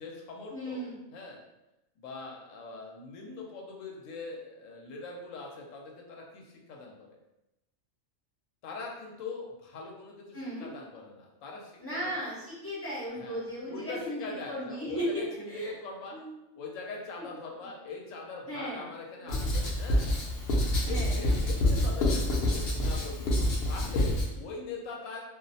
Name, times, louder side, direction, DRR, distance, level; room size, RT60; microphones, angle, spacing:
voice 1, 0.0-0.8 1.1-1.4 2.0-7.2 8.6-12.0 13.2-13.4 13.7-16.2 16.6-20.1 20.8-23.3 23.7-25.2, left 3 dB, 85° left, 0 dB, 1.0 m, -42 dB
voice 2, 0.5-1.0 10.3-10.7 11.8-15.7 16.1-16.3 17.2-17.3 18.5-18.9 19.2-19.3 20.8-21.2, equal, 15° left, -9 dB, 0.4 m, -36 dB
Writing, 19.3-24.3, left 1 dB, 60° left, 0.7 m, -27 dB
2.4 x 2.0 x 2.6 m, 0.93 s
omnidirectional pair, 1.3 m